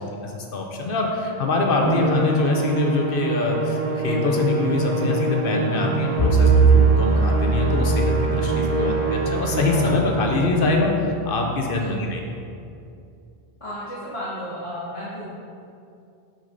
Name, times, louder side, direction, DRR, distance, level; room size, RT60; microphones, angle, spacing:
voice 1, 0.0-12.2, left 3 dB, 60° left, 1 dB, 0.9 m, -24 dB
Musical instrument, 1.8-10.3, right 2 dB, 40° right, 0.7 m, -25 dB
Bowed string instrument, 6.2-10.4, right 5 dB, 75° left, 1.5 m, -20 dB
voice 2, 8.6-9.0 11.7-12.0 13.6-15.3, equal, 30° left, -11 dB, 1.2 m, -34 dB
6.2 x 5.7 x 3.9 m, 2.5 s
omnidirectional pair, 1.0 m